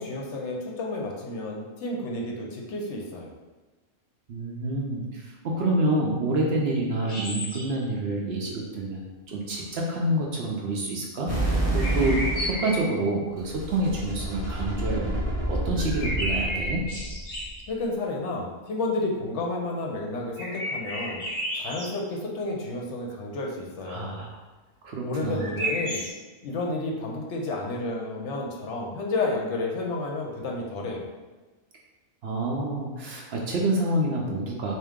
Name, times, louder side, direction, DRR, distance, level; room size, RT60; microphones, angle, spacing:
voice 1, 0.0-3.3 17.7-21.2 21.5-24.2 25.0-26.0 26.4-31.1, left 2 dB, 65° left, 0 dB, 0.9 m, -31 dB
voice 2, 4.3-9.0 9.3-15.2 15.5-16.8 23.9-24.3 24.8-25.4 32.2-34.7, right 1 dB, 60° right, -1 dB, 0.7 m, -27 dB
sound 1, 7.0-7.8 11.7-13.0 15.8-17.6 20.4-22.0 25.3-26.1, equal, 40° left, 0.9 m, -32 dB
sound 2, 11.3-12.6 13.3-17.5, right 1 dB, 15° right, 0.8 m, -28 dB
3.6 x 2.8 x 3.5 m, 1.2 s
omnidirectional pair, 1.4 m